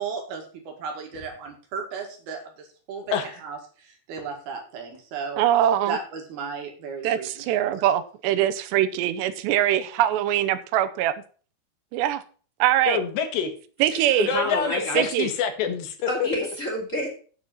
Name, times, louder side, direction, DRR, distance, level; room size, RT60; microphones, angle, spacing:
voice 1, 0.0-5.4 5.9-7.8, right 5 dB, 65° right, 3 dB, 3.7 m, -35 dB
voice 2, 5.4-6.0 7.0-11.1 11.9-12.2 12.6-13.0 13.8-14.3 14.9-15.3, right 12 dB, 85° right, 11 dB, 3.0 m, -22 dB
voice 3, 12.9-13.5 14.2-16.3, left 7 dB, 80° left, 6 dB, 3.7 m, -26 dB
voice 4, 13.9-15.1 16.1-17.1, left 1 dB, 20° left, -1 dB, 2.3 m, -29 dB
8.6 x 7.6 x 5.6 m, 0.40 s
omnidirectional pair, 4.9 m